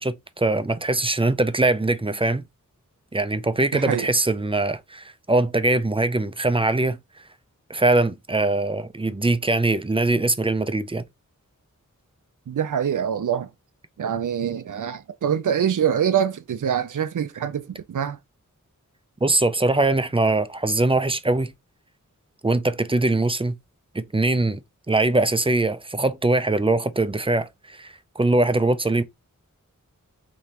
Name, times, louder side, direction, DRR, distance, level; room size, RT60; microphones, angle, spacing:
voice 1, 0.0-2.4 3.1-7.0 7.7-11.0 19.2-21.5 22.4-23.5 23.9-29.0, right 2 dB, 15° right, 0.5 m, -22 dB
voice 2, 3.7-4.1 12.5-13.5 14.0-18.2, right 8 dB, 70° right, 0.5 m, -24 dB
5.0 x 3.2 x 2.9 m
wide cardioid pair, 70°, 32 cm